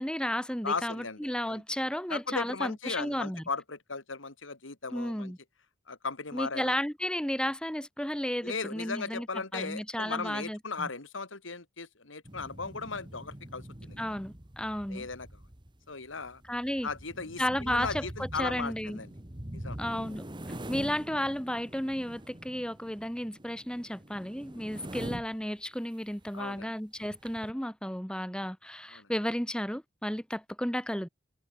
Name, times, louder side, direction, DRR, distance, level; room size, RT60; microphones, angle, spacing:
voice 1, 0.0-3.4 4.9-5.4 6.3-9.3 9.5-10.9 14.0-15.1 16.5-16.9 17.4-19.0 19.8-20.2 20.7-31.1, equal, 5° left, 2.0 m, -33 dB
voice 2, 0.6-1.2 1.5-1.6 2.1-5.3 5.9-6.8 8.4-14.2 14.9-15.3 15.9-16.4 16.8-19.1 19.5-19.8 26.3-26.7 28.9-29.1, left 4 dB, 90° left, 2.5 m, -37 dB
sound 1, 12.2-25.4 26.1-26.3 26.6-26.7 27.0-27.5, right 1 dB, 25° right, 1.8 m, -44 dB
head